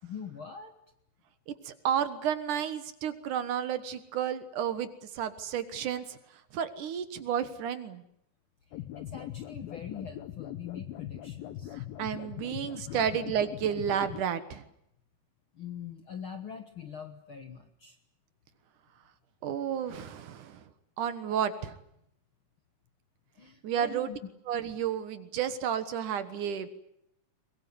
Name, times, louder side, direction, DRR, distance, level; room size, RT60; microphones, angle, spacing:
voice 1, 0.0-0.7 8.7-11.7 12.9-13.1 15.5-18.0 23.3-24.2, left 7 dB, 55° left, 7 dB, 1.5 m, -43 dB
voice 2, 1.5-6.2 6.5-8.0 11.7-14.6 19.4-20.6 21.0-21.7 23.6-24.1 24.5-26.7, right 9 dB, 65° right, 11 dB, 2.7 m, -32 dB
sound 1, 8.7-14.2, left 13 dB, 80° left, 2.8 m, -41 dB
23.0 x 22.0 x 9.7 m, 0.77 s
omnidirectional pair, 4.1 m